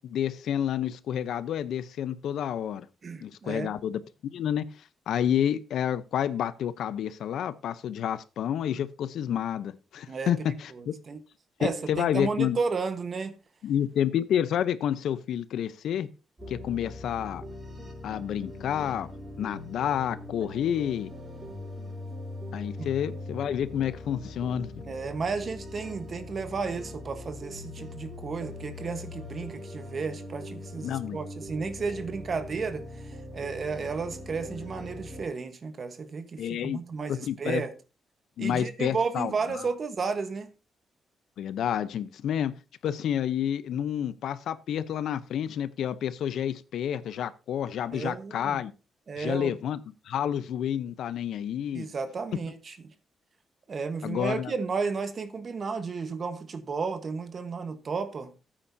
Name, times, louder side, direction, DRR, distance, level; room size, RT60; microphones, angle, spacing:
voice 1, 0.0-2.9 3.2-4.7 5.1-10.9 11.6-12.6 13.6-16.1 16.5-17.4 18.0-19.1 19.4-21.1 22.5-24.7 30.8-31.2 36.4-36.8 37.1-37.6 38.4-39.3 39.6-39.7 41.4-42.5 42.8-48.7 49.2-49.8 50.1-51.9 54.0-54.5, left 9 dB, 80° left, 0.7 m, -29 dB
voice 2, 3.0-3.7 10.1-10.3 10.7-11.2 11.6-13.3 22.8-22.9 24.9-37.7 38.4-40.5 47.9-48.6 49.1-49.6 51.7-52.8 53.7-58.3, right 4 dB, 45° right, 1.2 m, -33 dB
sound 1, 16.4-35.3, left 2 dB, 25° right, 5.4 m, -41 dB
14.0 x 8.8 x 2.7 m
cardioid pair, 110°, 0 cm